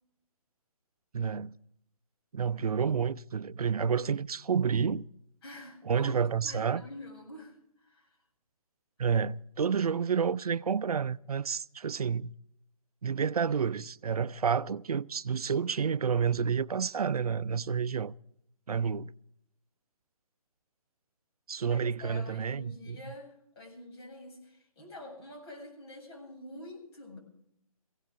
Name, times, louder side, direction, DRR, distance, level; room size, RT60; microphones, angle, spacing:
voice 1, 1.1-1.5 2.3-5.1 5.9-6.8 9.0-12.3 13.0-18.1 18.7-19.1 21.5-23.0, right 6 dB, 85° right, 0.5 m, -29 dB
voice 2, 5.4-6.2 6.4-8.2 21.6-27.2, left 1 dB, 45° left, 7.8 m, -47 dB
21.5 x 16.5 x 3.7 m
hypercardioid pair, 150°, 19 cm